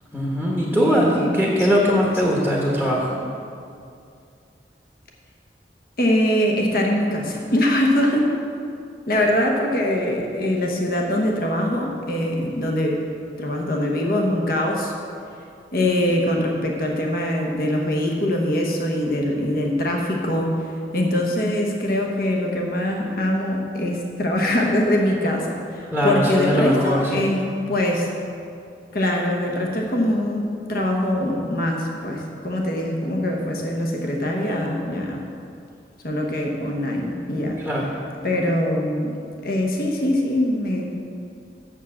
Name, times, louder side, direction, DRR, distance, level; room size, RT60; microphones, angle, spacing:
voice 1, 0.1-3.1 25.9-27.3 37.6-37.9, equal, 5° left, -3 dB, 1.0 m, -20 dB
voice 2, 0.7-1.7 6.0-8.3 9.1-13.0 13.4-14.9 15.7-20.5 20.9-28.1 28.9-35.2 36.0-37.6 38.2-39.1 39.4-40.9, left 1 dB, 55° left, 0 dB, 1.0 m, -23 dB
7.3 x 7.0 x 7.4 m, 2.5 s
head